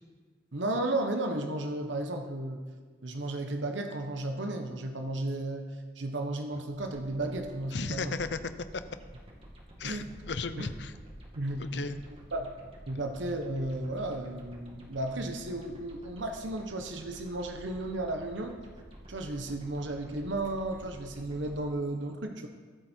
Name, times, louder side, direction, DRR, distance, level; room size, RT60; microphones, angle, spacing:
voice 1, 0.5-2.6 3.0-8.1 9.8-10.0 10.6-10.7 11.3-11.9 12.3-12.5 12.9-18.6 19.1-22.5, right 2 dB, 85° right, 4 dB, 1.2 m, -34 dB
sound 1, 6.7-21.5, equal, 30° right, 2.2 m, -50 dB
voice 2, 7.7-8.8 9.8-10.9 11.6-12.0, left 4 dB, 70° left, 12 dB, 0.8 m, -35 dB
22.5 x 8.2 x 4.6 m, 1.5 s
head